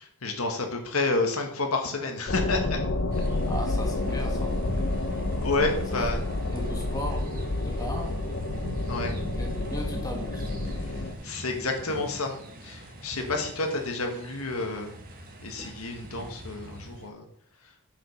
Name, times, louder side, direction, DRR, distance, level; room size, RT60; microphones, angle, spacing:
voice 1, 0.2-2.8 5.4-6.2 8.9-9.1 10.8-12.3 12.6-15.0 15.4-17.2, left 3 dB, 85° left, 3 dB, 1.5 m, -29 dB
sound 1, 2.3-11.1, left 2 dB, 60° left, 0.8 m, -29 dB
sound 2, 3.1-17.1, right 1 dB, 45° right, 1.4 m, -40 dB
voice 2, 3.5-4.6 5.9-6.0 6.5-7.3 7.6-8.2 9.3-10.6, equal, 15° left, 2 dB, 1.5 m, -36 dB
7.5 x 5.2 x 5.5 m, 0.66 s
head